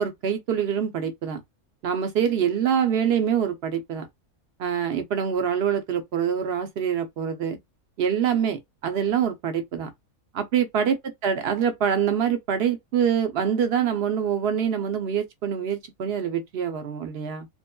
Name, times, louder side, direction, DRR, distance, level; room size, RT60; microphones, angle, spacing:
voice 1, 0.0-1.4 1.8-4.1 4.6-7.6 8.0-9.9 10.3-17.5, right 8 dB, 55° right, 0.8 m, -25 dB
2.9 x 2.5 x 2.2 m
omnidirectional pair, 1.5 m